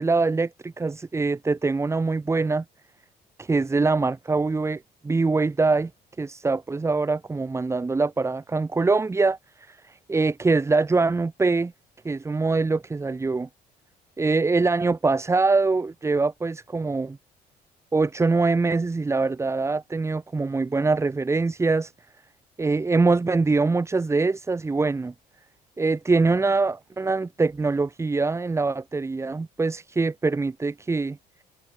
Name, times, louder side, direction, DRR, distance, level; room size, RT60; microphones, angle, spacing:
voice 1, 0.0-2.6 3.4-5.9 6.2-11.7 12.0-13.5 14.2-17.2 17.9-21.9 22.6-25.1 25.8-31.2, right 3 dB, 15° right, 0.9 m, -23 dB
cardioid pair, 110°, 17 cm